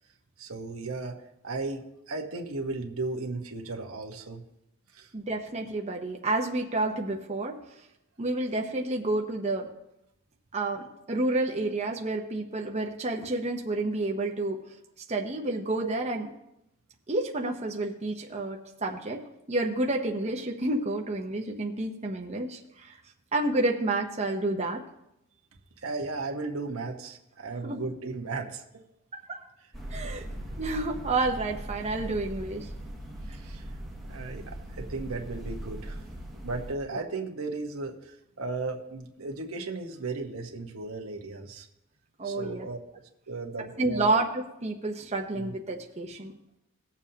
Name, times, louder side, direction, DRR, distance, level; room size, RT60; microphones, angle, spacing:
voice 1, 0.4-4.4 4.9-5.1 25.8-28.8 33.2-33.7 34.1-36.0 36.4-41.7 42.2-42.8 43.3-44.1 45.3-45.5, right 3 dB, 90° right, 2 dB, 1.3 m, -35 dB
voice 2, 5.1-7.6 8.2-9.7 10.5-14.6 15.1-16.3 17.1-19.2 19.5-23.0 23.3-24.8 27.6-27.8 29.3-29.4 29.9-30.2 30.6-32.7 42.2-42.7 43.8-46.3, right 2 dB, 30° right, 1 dB, 0.9 m, -29 dB
sound 1, 29.7-36.7, right 1 dB, ahead, 1.4 m, -39 dB
19.0 x 7.2 x 2.9 m, 0.84 s
head